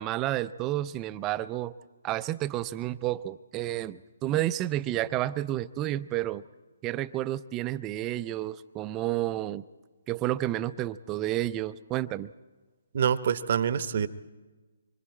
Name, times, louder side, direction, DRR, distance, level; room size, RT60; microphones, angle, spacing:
voice 1, 0.0-1.7 2.0-6.4 6.8-9.6 10.1-12.3, right 14 dB, 20° right, 14 dB, 0.5 m, -30 dB
voice 2, 12.9-14.1, right 8 dB, 50° right, 14 dB, 0.9 m, -26 dB
25.0 x 24.0 x 4.4 m, 1.3 s
figure-of-eight pair, 140°, 0 cm